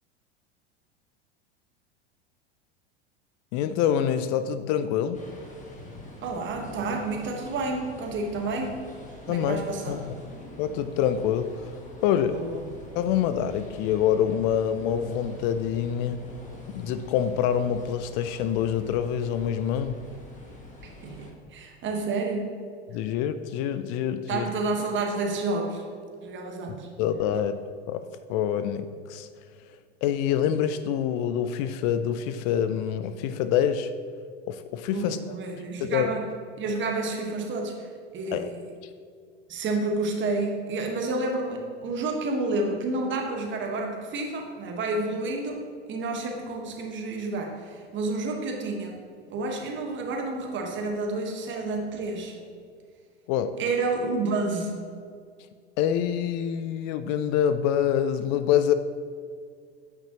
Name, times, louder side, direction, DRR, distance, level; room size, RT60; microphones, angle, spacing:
voice 1, 3.5-5.2 9.3-9.6 9.9-10.0 10.2-11.5 12.0-12.4 13.0-16.2 16.7-20.0 22.9-24.5 27.0-27.6 27.9-28.0 28.3-29.3 30.0-33.9 34.5-35.2 35.8-36.1 38.3-38.5 53.3-53.5 55.8-58.7, left 9 dB, 50° left, 11 dB, 0.4 m, -26 dB
sound 1, 5.1-21.3, left 1 dB, 25° left, 1.4 m, -45 dB
voice 2, 6.2-8.8 9.3-10.1 12.3-12.6 20.8-22.5 24.3-25.8 26.2-26.9 34.9-36.2 36.6-38.6 39.5-45.6 45.9-49.0 49.3-52.4 53.6-54.7, right 3 dB, 35° right, 2 dB, 1.3 m, -30 dB
8.7 x 5.7 x 2.9 m, 2.1 s
hypercardioid pair, 90°, 32 cm